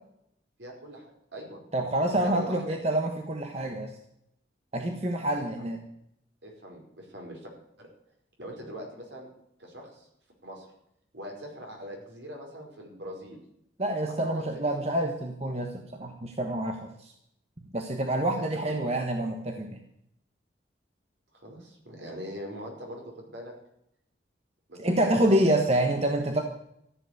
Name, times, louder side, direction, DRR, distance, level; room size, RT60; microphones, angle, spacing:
voice 1, 0.6-1.1 1.3-1.6 2.1-2.8 5.6-5.7 6.4-7.5 7.8-7.9 8.4-9.3 9.6-10.1 10.4-10.7 11.1-13.4 14.2-14.8 18.1-18.2 18.5-18.9 21.3-23.5 24.7-25.3 25.7-25.8, equal, 70° right, 0 dB, 5.0 m, -42 dB
voice 2, 1.7-3.9 4.7-5.8 13.8-17.1 17.6-19.8 24.8-26.4, right 1 dB, 35° right, 3 dB, 1.3 m, -27 dB
14.0 x 8.1 x 9.6 m, 0.76 s
head